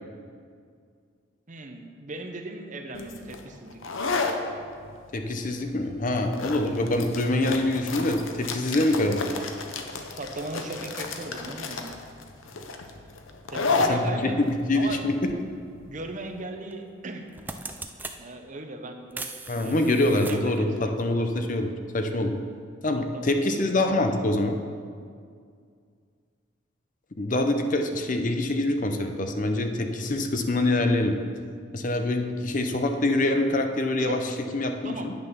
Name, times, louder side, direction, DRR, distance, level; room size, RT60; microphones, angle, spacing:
voice 1, 1.5-3.9 10.1-11.9 13.5-14.5 14.7-15.0 15.9-17.2 18.2-19.3 19.6-20.7 21.0-21.2 23.1-24.0 34.0-34.2 34.8-35.1, right 2 dB, 40° right, 5 dB, 0.7 m, -38 dB
sound 1, 2.9-16.4, left 3 dB, 85° left, 0.8 m, -32 dB
voice 2, 5.1-9.3 13.8-15.1 19.5-22.4 22.8-24.6 27.2-31.1 31.7-34.2 34.5-35.1, left 1 dB, 40° left, 5 dB, 0.6 m, -25 dB
sound 2, 15.3-15.4 16.7-16.9 17.2-18.2 19.1-20.6, right 3 dB, 10° right, 0.4 m, -39 dB
9.1 x 6.8 x 5.7 m, 2.2 s
head